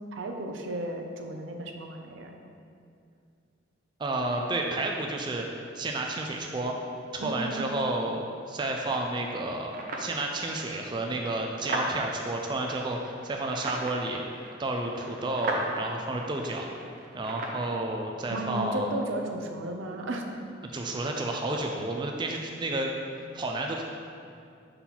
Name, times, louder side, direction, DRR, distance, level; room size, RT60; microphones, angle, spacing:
voice 1, 0.1-2.3 7.2-7.6 18.3-20.3, right 1 dB, 85° right, 3 dB, 0.6 m, -34 dB
voice 2, 4.0-5.5 5.7-6.7 7.1-14.2 14.6-16.7 17.1-18.9 20.7-22.9 23.3-23.8, right 2 dB, 25° right, 1 dB, 0.4 m, -31 dB
sound 1, 8.6-17.6, right 2 dB, 45° right, 0.7 m, -38 dB
5.9 x 3.9 x 4.1 m, 2.4 s
head